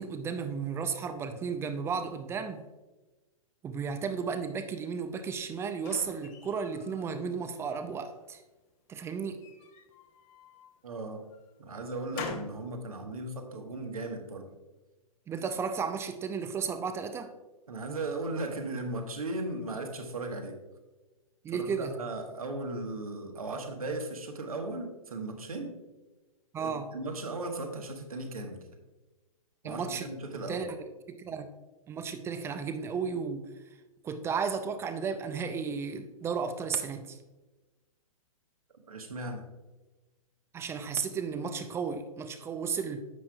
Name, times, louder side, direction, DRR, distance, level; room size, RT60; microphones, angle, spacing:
voice 1, 0.0-2.6 3.6-8.4 8.9-9.4 12.1-12.2 15.3-17.3 21.4-21.9 26.5-26.9 29.6-30.1 30.5-30.7 31.1-31.5 31.9-33.5 34.0-37.2 40.5-43.0, right 6 dB, 15° right, 9 dB, 0.5 m, -34 dB
sound 1, 5.2-7.1 7.5-8.3 9.3-10.7 11.3-12.6, left 5 dB, 35° left, 1.0 m, -45 dB
voice 2, 10.8-11.2 11.6-14.5 17.7-20.6 21.5-25.7 26.6-28.7 29.6-30.7 38.9-39.4, right 2 dB, 75° right, 4 dB, 1.4 m, -37 dB
9.8 x 7.4 x 2.3 m, 1.1 s
figure-of-eight pair, 120°, 18 cm